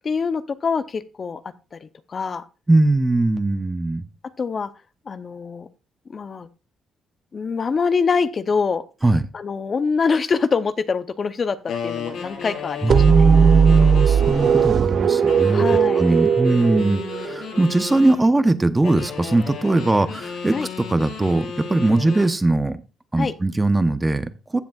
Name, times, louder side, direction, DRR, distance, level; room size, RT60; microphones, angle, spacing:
voice 1, 0.0-1.4 1.7-2.5 4.4-4.7 5.1-5.7 6.1-6.5 7.3-8.8 9.3-13.0 15.5-16.0 20.5-20.7 21.8-22.0 23.2-23.3, left 5 dB, 40° left, 12 dB, 0.6 m, -24 dB
voice 2, 2.7-4.0 9.0-9.2 12.8-15.7 16.0-20.6 20.9-22.8 23.1-24.6, right 2 dB, 15° right, 12 dB, 0.8 m, -20 dB
sound 1, 11.7-14.8 15.3-18.2 18.8-22.4, left 5 dB, 85° left, 3.9 m, -33 dB
sound 2, 12.9-17.6, right 8 dB, 55° right, 0.4 m, -18 dB
15.0 x 7.0 x 2.4 m, 0.32 s
cardioid pair, 90°, 0 cm